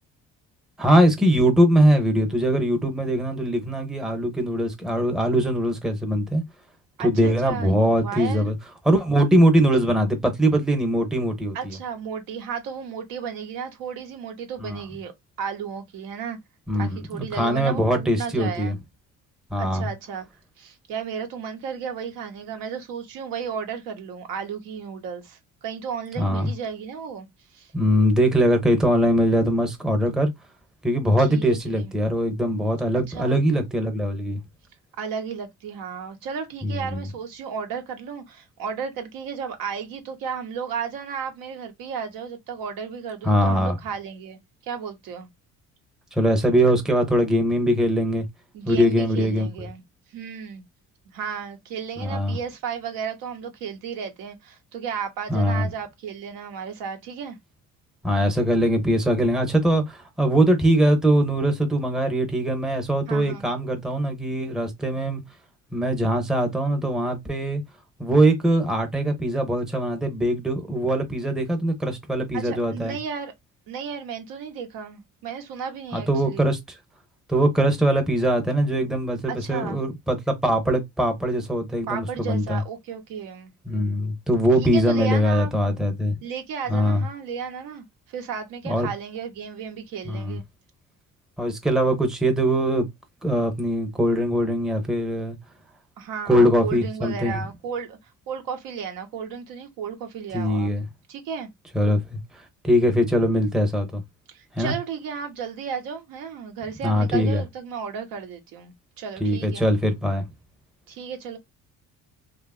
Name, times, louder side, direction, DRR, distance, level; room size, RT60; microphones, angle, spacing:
voice 1, 0.8-6.4 7.0-8.5 8.9-11.7 14.6-14.8 16.7-17.0 17.3-18.7 19.5-19.9 26.2-26.5 27.7-30.3 30.8-34.4 36.6-37.0 43.2-43.8 46.2-48.2 48.7-49.5 52.0-52.4 55.3-55.7 58.0-65.2 65.7-67.6 68.0-73.0 75.9-76.6 77.3-82.6 83.7-86.1 86.7-87.0 88.7-88.9 90.1-90.4 91.4-92.9 93.2-95.4 96.3-97.4 100.3-100.9 101.7-102.2 102.6-104.0 104.6-104.7 106.8-107.4 109.2-110.2, equal, ahead, 0.5 m, -21 dB
voice 2, 7.0-7.7 8.0-8.5 11.5-15.1 15.4-16.4 16.7-18.8 19.6-20.3 20.6-27.7 31.2-31.9 32.9-33.4 35.0-45.3 48.5-49.8 50.1-50.6 51.1-57.4 63.1-63.5 72.3-73.3 73.7-76.5 79.3-79.8 81.9-83.5 84.6-85.5 86.2-90.4 96.0-98.0 98.3-100.7 101.1-101.5 104.3-109.7 110.9-111.4, right 6 dB, 80° right, 0.9 m, -34 dB
2.9 x 2.4 x 2.2 m
cardioid pair, 115°, 33 cm